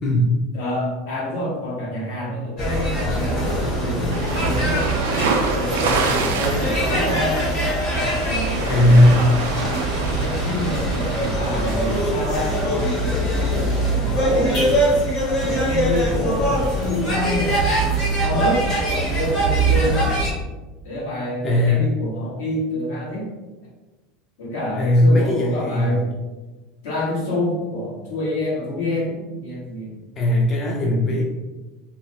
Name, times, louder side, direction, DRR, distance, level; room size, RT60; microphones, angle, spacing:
voice 1, 0.0-0.4 6.4-6.5 8.6-9.3 21.4-21.9 24.7-26.1 30.2-31.2, left 1 dB, 35° left, -2 dB, 0.5 m, -17 dB
voice 2, 0.5-5.0 5.5-7.5 7.8-7.9 8.2-9.1 10.0-14.7 15.4-17.8 18.2-20.1 20.8-23.3 24.4-26.1 26.8-29.9, left 1 dB, 80° left, -6 dB, 1.2 m, -27 dB
sound 1, 2.6-20.3, right 1 dB, 55° left, 1.2 m, -22 dB
sound 2, 4.1-12.0, right 4 dB, 90° right, 0.3 m, -28 dB
2.7 x 2.3 x 2.7 m, 1.2 s
supercardioid pair, 110°, 0 cm